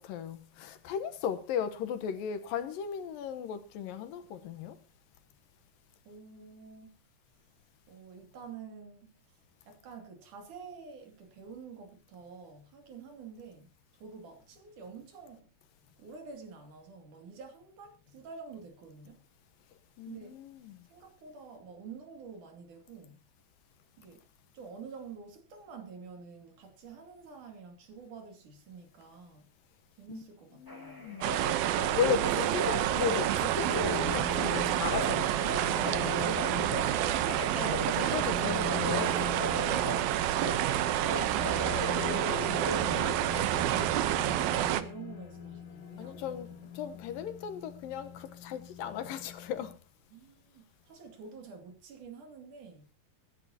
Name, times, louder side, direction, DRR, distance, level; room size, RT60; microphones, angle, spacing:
voice 1, 0.0-4.8 20.0-20.8 30.1-30.2 30.5-31.3 32.0-35.3 36.0-36.3 37.3-39.6 46.0-49.8, left 8 dB, 75° left, 2.7 m, -36 dB
voice 2, 6.1-6.9 7.9-9.1 9.7-13.7 14.0-15.5 16.0-19.2 20.1-20.4 20.9-23.2 24.0-24.2 24.5-29.5 30.0-31.6 32.3-32.7 36.1-37.2 43.1-46.7 50.1-52.9, right 5 dB, 60° right, 3.8 m, -48 dB
Telephone, 30.7-33.2 33.5-35.1 35.4-36.9 37.3-40.7 41.0-43.1, left 1 dB, 10° left, 1.6 m, -38 dB
sound 1, 31.2-44.8, right 13 dB, 85° right, 2.8 m, -29 dB
sound 2, 33.6-49.8, left 8 dB, 60° left, 2.0 m, -42 dB
24.0 x 11.0 x 2.8 m
omnidirectional pair, 4.2 m